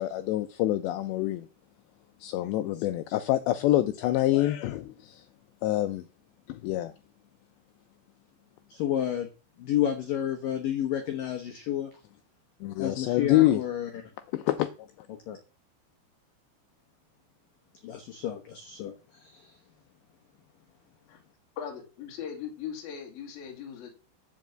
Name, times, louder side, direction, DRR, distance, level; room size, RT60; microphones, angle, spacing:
voice 1, 0.0-1.5 2.2-5.2 5.6-6.0 6.5-6.9 12.6-13.6 14.3-14.7, left 15 dB, 90° left, 2.5 m, -26 dB
voice 2, 8.7-9.3 9.6-11.9 12.8-13.9 15.3-15.4 17.8-18.9 19.2-19.5, left 10 dB, 75° left, 2.1 m, -30 dB
voice 3, 21.6-23.9, left 8 dB, 55° left, 3.7 m, -39 dB
11.0 x 5.4 x 7.7 m
omnidirectional pair, 5.7 m